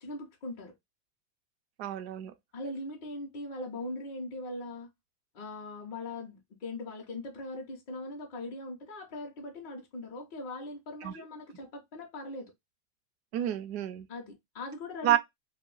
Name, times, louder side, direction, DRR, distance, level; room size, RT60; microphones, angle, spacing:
voice 1, 0.0-0.7 2.5-4.9 5.3-12.5 14.1-15.2, left 2 dB, 25° left, 0.5 m, -40 dB
voice 2, 1.8-2.3 11.0-11.1 13.3-14.1 15.0-15.2, right 11 dB, 45° right, 0.4 m, -29 dB
2.6 x 2.1 x 3.6 m
supercardioid pair, 165°, 47 cm